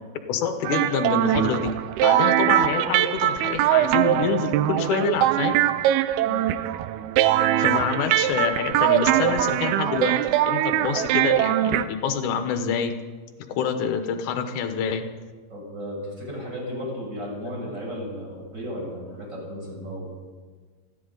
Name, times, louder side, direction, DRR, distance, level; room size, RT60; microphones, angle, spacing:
voice 1, 0.3-1.7 2.0-5.6 7.6-12.9 13.6-15.0, left 7 dB, 65° left, 7 dB, 2.1 m, -27 dB
sound 1, 0.6-11.9, right 13 dB, 85° right, 2.5 m, -22 dB
voice 2, 15.5-20.1, equal, 20° right, -5 dB, 6.9 m, -34 dB
30.0 x 11.0 x 3.9 m, 1.5 s
omnidirectional pair, 4.5 m